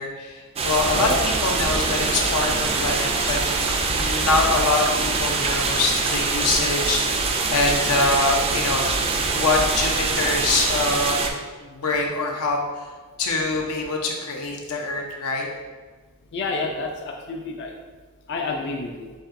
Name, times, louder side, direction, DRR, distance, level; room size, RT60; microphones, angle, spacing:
voice 1, 0.0-3.7 3.9-7.3 7.5-8.9 9.3-12.9 13.2-15.5, left 3 dB, 90° left, 1 dB, 0.7 m, -24 dB
sound 1, 0.6-11.3, right 4 dB, 25° right, 0.3 m, -24 dB
sound 2, 0.6-6.5, right 3 dB, 70° right, 0.6 m, -36 dB
voice 2, 16.3-17.7 18.3-19.1, left 3 dB, 50° left, 1 dB, 0.4 m, -29 dB
7.4 x 2.6 x 2.5 m, 1.4 s
head